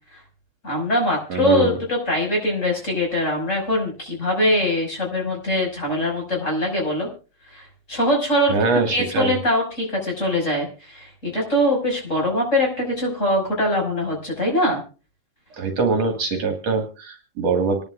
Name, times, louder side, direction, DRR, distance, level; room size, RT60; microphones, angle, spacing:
voice 1, 0.6-7.1 7.5-8.6 8.9-14.8, left 1 dB, 25° left, 0 dB, 5.9 m, -22 dB
voice 2, 1.3-1.7 8.5-9.3 15.6-17.8, right 4 dB, 60° right, 4 dB, 2.7 m, -23 dB
27.0 x 11.0 x 2.4 m, 0.34 s
omnidirectional pair, 3.3 m